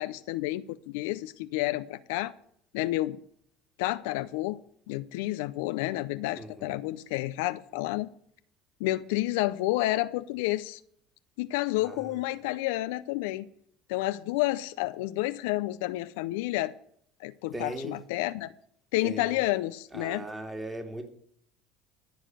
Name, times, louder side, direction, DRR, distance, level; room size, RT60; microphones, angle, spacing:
voice 1, 0.0-2.3 2.7-3.2 3.8-4.6 4.9-8.1 8.8-10.8 11.4-13.5 13.9-16.7 17.2-18.5 18.9-20.2, left 17 dB, 80° left, 0.5 m, -30 dB
voice 2, 6.3-6.8 11.8-12.3 17.5-18.0 19.0-19.4 19.9-21.1, right 1 dB, 15° right, 2.4 m, -39 dB
14.0 x 4.9 x 9.1 m
hypercardioid pair, 80°, 0 cm